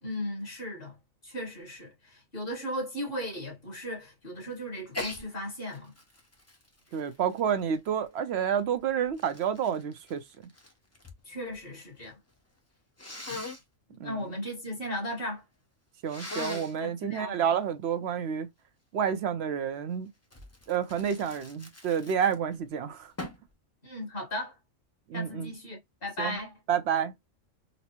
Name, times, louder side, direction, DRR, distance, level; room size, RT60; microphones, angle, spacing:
voice 1, 0.0-0.9 1.2-5.9 11.2-12.2 13.3-13.5 14.0-15.4 16.8-17.3 23.8-24.5 25.1-26.5, equal, 45° left, 1.5 m, -36 dB
Sneeze, 4.9-5.2 5.7-8.1 8.8-11.2 11.5-12.1 13.0-13.6 16.1-16.8 20.3-22.6 23.2-23.5, left 2 dB, 20° left, 0.4 m, -40 dB
voice 2, 6.9-10.2 14.0-14.3 16.0-18.5 18.9-20.1 20.7-23.1 25.1-25.5 26.2-26.4 26.7-27.1, right 8 dB, 65° right, 0.7 m, -29 dB
4.1 x 2.0 x 2.7 m
omnidirectional pair, 1.4 m